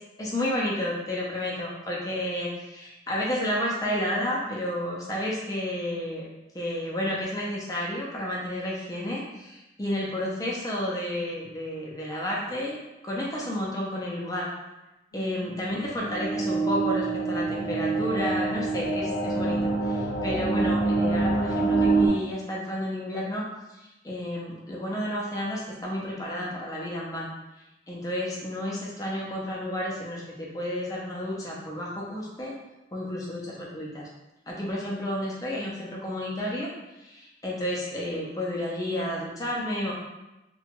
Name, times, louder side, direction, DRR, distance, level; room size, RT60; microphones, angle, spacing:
voice 1, 0.2-6.3 6.5-12.8 13.0-14.5 15.1-23.5 24.0-27.3 27.9-32.5 32.9-34.0 34.5-36.7 37.0-39.9, left 1 dB, 20° left, -4 dB, 0.4 m, -31 dB
sound 1, 15.1-22.1, right 3 dB, 65° left, 0.6 m, -26 dB
2.8 x 2.2 x 2.8 m, 0.98 s
head